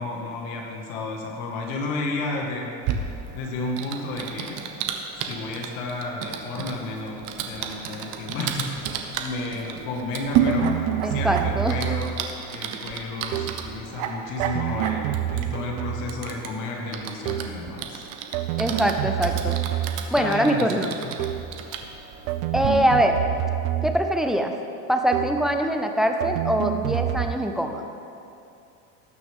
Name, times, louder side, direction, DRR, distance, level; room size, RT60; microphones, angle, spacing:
voice 1, 0.0-2.7 3.3-4.6 5.1-8.8 9.2-10.7 11.0-12.1 12.5-18.0 18.7-18.9 20.2-20.9, left 2 dB, 80° left, 0 dB, 1.8 m, -32 dB
Typing, 2.8-22.7, right 7 dB, 50° right, 1.1 m, -32 dB
sound 1, 10.5-12.3 13.3-13.7 14.4-16.3 17.3-17.7 18.3-20.2 21.2-21.6 22.3-24.2 25.1-25.5 26.2-27.4, right 13 dB, 80° right, 0.6 m, -28 dB
voice 2, 11.0-11.8 18.6-19.6 20.1-21.0 22.5-23.2 23.8-24.5 24.9-27.9, equal, ahead, 4 dB, 0.3 m, -23 dB
18.5 x 6.7 x 3.6 m, 2.6 s
supercardioid pair, 140°, 39 cm